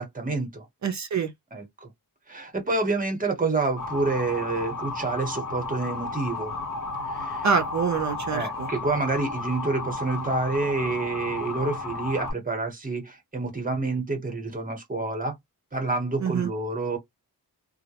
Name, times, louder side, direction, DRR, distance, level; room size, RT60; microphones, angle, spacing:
voice 1, 0.0-0.7 1.5-1.9 2.3-6.5 7.1-7.5 8.3-15.3 15.7-17.0, right 3 dB, 20° right, 0.8 m, -28 dB
voice 2, 0.8-1.3 7.4-8.7 16.2-16.5, right 6 dB, 50° right, 0.5 m, -26 dB
Motor vehicle (road) / Siren, 3.8-12.3, left 3 dB, 55° left, 0.7 m, -33 dB
2.3 x 2.0 x 2.7 m
wide cardioid pair, 160°, 38 cm